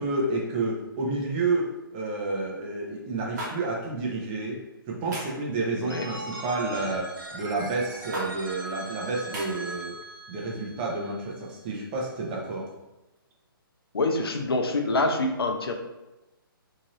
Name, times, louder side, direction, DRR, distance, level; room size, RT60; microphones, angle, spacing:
voice 1, 0.0-4.6 4.9-9.9 10.3-12.7, right 3 dB, 25° right, -2 dB, 0.6 m, -30 dB
sound 1, 3.4-3.5 5.1-5.4 6.7-7.0 8.1-8.3 9.3-9.5, right 1 dB, 45° right, 1.1 m, -35 dB
Telephone, 5.9-11.7, right 2 dB, 65° right, 0.7 m, -40 dB
voice 2, 13.9-15.7, left 2 dB, 85° left, 4 dB, 0.5 m, -26 dB
2.8 x 2.5 x 2.9 m, 1.0 s
hypercardioid pair, 145°, 12 cm